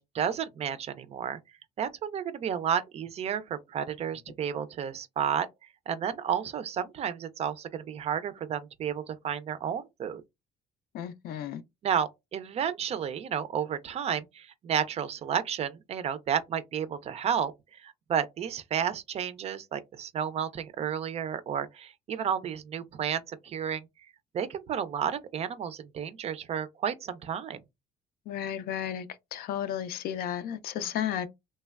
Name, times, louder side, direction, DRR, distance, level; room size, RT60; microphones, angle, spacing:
voice 1, 0.0-1.4 1.8-5.5 5.9-10.2 11.8-23.9 24.3-27.6 30.8-30.9, right 8 dB, 40° right, 0.4 m, -32 dB
voice 2, 10.9-11.6 28.3-29.1 29.3-31.3, left 10 dB, 75° left, 0.5 m, -33 dB
3.1 x 2.1 x 2.3 m
cardioid pair, 130°, 16 cm